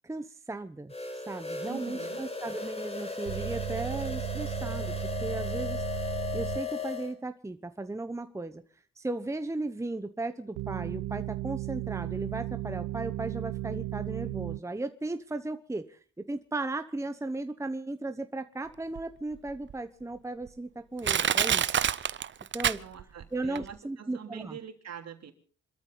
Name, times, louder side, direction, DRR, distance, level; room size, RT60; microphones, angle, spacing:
voice 1, 0.0-0.9 1.3-4.9 5.2-5.8 6.3-8.6 9.0-21.8 22.5-22.8 23.3-24.6, right 2 dB, 10° right, 9 dB, 1.0 m, -36 dB
sound 1, 0.9-7.1, left 4 dB, 20° left, 4.2 m, -36 dB
voice 2, 1.6-2.2 22.7-25.3, right 8 dB, 60° right, 5 dB, 3.3 m, -44 dB
sound 2, 3.2-6.6 10.5-14.6, right 15 dB, 80° right, 0.8 m, -35 dB
Crushing, 19.0-19.1 19.7-19.8 20.5-20.6 21.0-23.2 23.6-23.7, right 8 dB, 40° right, 0.7 m, -26 dB
26.5 x 13.5 x 4.0 m, 0.41 s
cardioid pair, 90°, 30 cm